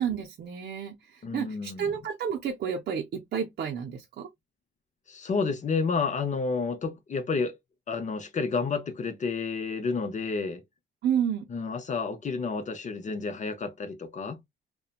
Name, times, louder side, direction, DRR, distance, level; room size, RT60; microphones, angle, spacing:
voice 1, 0.0-4.3 11.0-11.5, right 8 dB, 55° right, 0.6 m, -31 dB
voice 2, 1.2-1.9 5.1-7.5 7.9-10.6 11.5-14.4, left 4 dB, 40° left, 0.7 m, -30 dB
2.7 x 2.2 x 2.4 m
cardioid pair, 90°, 20 cm